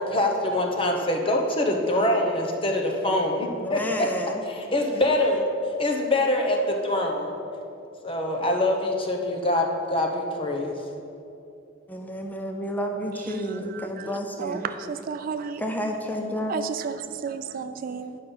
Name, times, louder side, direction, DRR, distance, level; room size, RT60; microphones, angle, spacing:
voice 1, 0.0-4.1 4.5-5.4 5.8-7.3 8.0-10.8, left 1 dB, 25° left, 1 dB, 0.9 m, -24 dB
voice 2, 3.5-4.4 11.9-14.7 15.6-16.6, equal, 10° left, 3 dB, 0.5 m, -30 dB
voice 3, 13.3-14.1 14.4-15.6 16.5-18.2, right 6 dB, 45° right, 10 dB, 0.3 m, -33 dB
9.7 x 5.6 x 5.4 m, 2.6 s
head